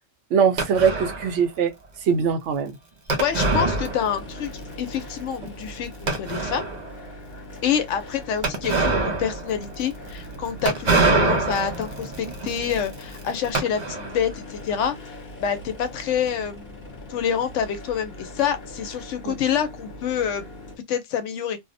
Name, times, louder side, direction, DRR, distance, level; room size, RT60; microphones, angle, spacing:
voice 1, 0.3-1.7 2.0-2.8 19.2-19.3, right 6 dB, 70° right, 0.9 m, -21 dB
sound 1, 0.6-1.4 3.1-4.5 4.7-4.8 5.4-5.5 6.1-6.9 8.4-14.3, right 3 dB, 50° right, 0.5 m, -25 dB
voice 2, 3.2-4.5 4.8-6.6 7.6-15.0 15.4-16.8 17.1-20.5 20.9-21.6, left 8 dB, 75° left, 0.9 m, -27 dB
sound 2, 3.2-20.8, left 1 dB, 40° left, 0.9 m, -41 dB
2.6 x 2.0 x 2.6 m
omnidirectional pair, 1.3 m